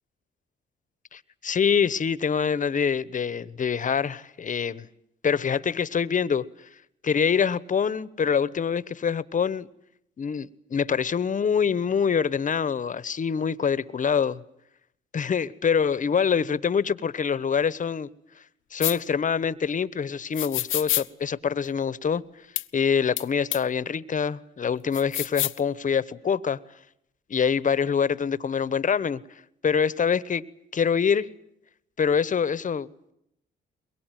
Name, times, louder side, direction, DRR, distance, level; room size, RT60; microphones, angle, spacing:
voice 1, 1.1-4.9 5.2-6.5 7.0-9.7 10.2-14.4 15.1-18.1 18.7-22.2 22.7-26.6 27.3-29.2 29.6-30.4 30.7-31.3 32.0-33.1, left 6 dB, 40° left, 1.1 m, -25 dB
sound 1, 18.8-19.0 20.4-21.1 22.6-22.7 23.2-23.3 23.5-23.6 24.9-25.6, left 14 dB, 80° left, 0.9 m, -27 dB
23.0 x 22.5 x 9.2 m
cardioid pair, 90°, 20 cm